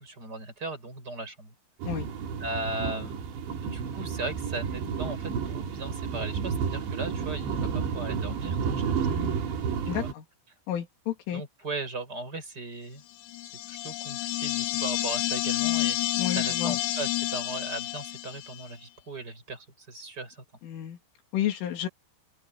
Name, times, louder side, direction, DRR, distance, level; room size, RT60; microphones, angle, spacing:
voice 1, 0.0-1.5 2.4-3.2 3.6-9.2 9.9-10.1 11.3-13.0 13.7-20.4, right 2 dB, 20° right, 5.7 m, -38 dB
Wind On Vent, 1.8-10.1, right 6 dB, 70° right, 4.9 m, -31 dB
voice 2, 9.0-9.4 9.9-10.3 10.7-11.4 16.2-16.8 20.6-21.0 21.3-21.9, left 11 dB, 80° left, 5.4 m, -31 dB
sound 1, 13.2-18.6, left 16 dB, 60° left, 6.0 m, -29 dB
open air
omnidirectional pair, 5.6 m